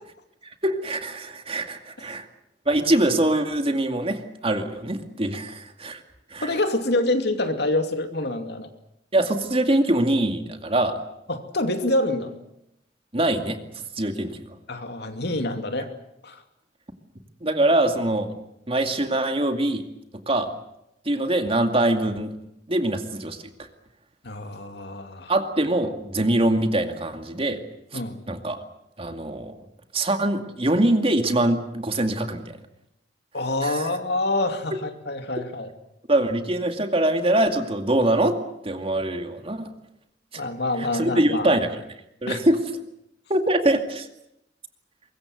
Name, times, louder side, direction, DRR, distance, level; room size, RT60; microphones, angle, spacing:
voice 1, 0.6-2.3 2.7-6.0 6.3-6.6 9.1-10.9 13.1-14.4 17.4-18.3 18.7-19.8 20.3-20.5 21.1-22.3 22.7-23.4 25.3-27.6 27.9-28.0 28.3-28.6 29.0-29.6 29.9-32.6 33.6-33.9 36.1-38.4 38.6-39.7 40.8-41.8 42.2-42.6 43.3-44.1, right 1 dB, 30° right, 6 dB, 2.3 m, -23 dB
voice 2, 6.4-8.7 11.3-12.3 14.7-15.9 16.2-16.4 24.2-25.3 27.9-28.2 33.3-35.7 40.4-41.5 42.3-42.4, left 2 dB, 65° left, 7 dB, 2.6 m, -26 dB
24.0 x 22.0 x 7.9 m, 0.83 s
head